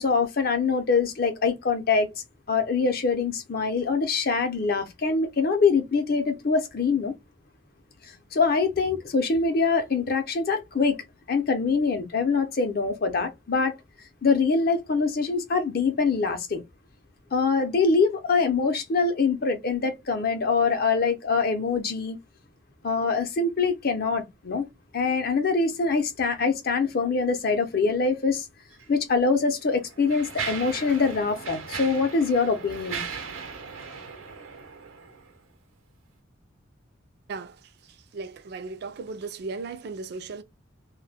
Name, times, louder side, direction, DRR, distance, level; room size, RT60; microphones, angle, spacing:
voice 1, 0.0-2.1 2.5-7.1 8.3-11.0 11.3-13.7 14.2-16.6 17.3-22.2 22.8-24.7 24.9-28.4 28.9-33.0, left 4 dB, 50° left, 0.6 m, -24 dB
Mechanisms, 28.7-28.9 29.6-35.4, right 5 dB, 90° right, 0.7 m, -37 dB
voice 2, 38.1-40.4, right 4 dB, 55° right, 0.3 m, -36 dB
2.2 x 2.1 x 3.2 m
head